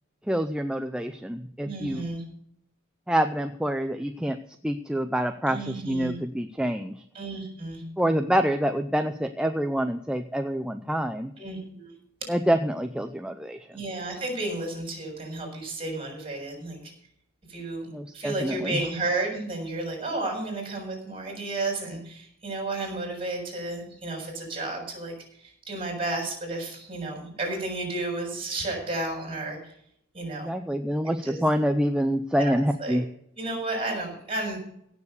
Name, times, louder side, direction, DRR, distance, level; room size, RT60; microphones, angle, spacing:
voice 1, 0.3-2.0 3.1-4.4 4.6-7.0 8.0-11.3 12.3-13.7 17.9-18.8 30.3-33.0, equal, 5° right, 6 dB, 0.6 m, -26 dB
voice 2, 1.6-2.2 5.5-6.2 7.1-7.8 11.4-11.9 13.7-16.9 17.5-17.9 18.1-29.7 30.1-30.5 31.0-31.4 32.4-32.5 32.8-33.0 33.4-34.6, right 2 dB, 25° right, 1 dB, 6.7 m, -32 dB
16.5 x 7.2 x 6.6 m, 0.70 s
head